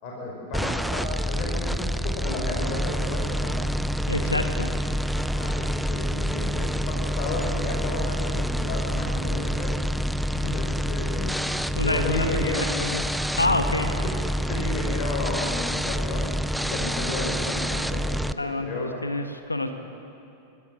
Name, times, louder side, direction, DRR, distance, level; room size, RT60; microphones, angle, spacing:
voice 1, 0.0-4.6 5.1-9.8 10.3-12.7 13.6-18.9, left 2 dB, 40° left, -2 dB, 5.0 m, -33 dB
sound 1, 0.5-18.3, equal, ahead, 0.4 m, -27 dB
voice 2, 4.1-4.7 11.7-12.6 12.9-13.0 13.4-13.9 18.4-19.7, left 2 dB, 80° left, 7 dB, 1.3 m, -27 dB
26.0 x 13.0 x 7.7 m, 2.7 s
figure-of-eight pair, 90°, 0 cm